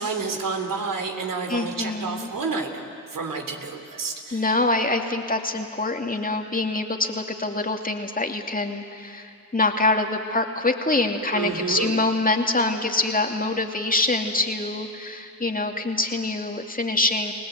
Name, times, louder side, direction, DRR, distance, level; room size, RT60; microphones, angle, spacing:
voice 1, 0.0-4.4 11.3-11.9, right 4 dB, 60° right, 4 dB, 3.5 m, -29 dB
voice 2, 1.5-2.3 4.3-17.3, left 2 dB, 20° left, 3 dB, 2.5 m, -25 dB
30.0 x 18.5 x 8.3 m, 2.5 s
supercardioid pair, 45°, 37 cm